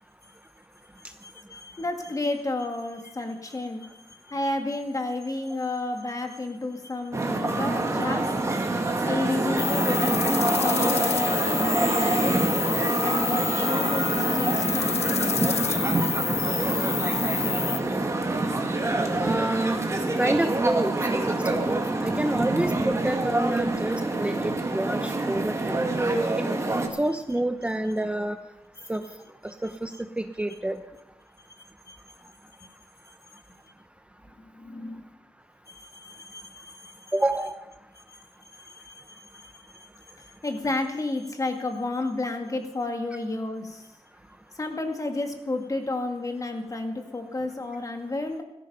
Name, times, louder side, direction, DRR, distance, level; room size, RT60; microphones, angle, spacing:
voice 1, 1.2-8.3 9.0-10.2 10.6-12.4 13.0-14.1 14.3-15.4 25.3-25.5 31.9-32.0 34.4-35.1 35.7-37.0 38.1-38.2 38.6-39.9 40.2-43.9 44.5-48.4, left 2 dB, 30° left, 4 dB, 2.1 m, -31 dB
sound 1, 7.1-26.9, right 2 dB, 30° right, 2.0 m, -26 dB
sound 2, 9.6-17.8, left 8 dB, 85° left, 0.7 m, -29 dB
Trumpet, 9.7-15.6, right 5 dB, 60° right, 1.4 m, -39 dB
voice 2, 19.2-19.8 20.2-25.6 26.4-26.5 27.0-28.4 28.9-29.0 29.4-29.9 30.2-30.8 37.1-37.6, right 1 dB, 10° right, 7 dB, 0.7 m, -28 dB
16.0 x 14.0 x 5.6 m, 0.94 s
wide cardioid pair, 120°, 11 cm